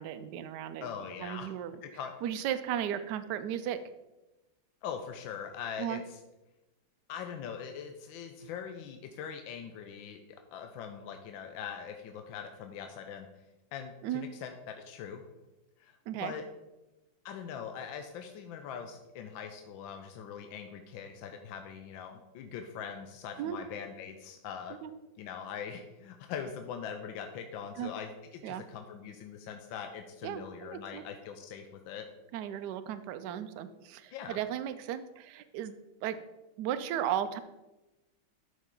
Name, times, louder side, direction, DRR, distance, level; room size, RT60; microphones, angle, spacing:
voice 1, 0.0-0.9 1.2-1.8 2.2-3.8 5.8-6.0 14.0-14.3 16.1-16.3 23.4-23.6 24.7-24.9 27.8-27.9 28.4-28.6 30.2-31.0 32.3-35.8 36.0-36.2 36.6-37.4, right 10 dB, 70° right, 10 dB, 1.0 m, -35 dB
voice 2, 0.8-1.5 1.8-2.1 4.8-6.2 7.1-10.2 10.5-13.3 13.7-15.2 15.8-16.4 17.2-24.8 25.2-32.1 34.1-34.4, left 7 dB, 75° left, 6 dB, 1.4 m, -42 dB
12.5 x 5.4 x 3.7 m, 1.0 s
omnidirectional pair, 2.2 m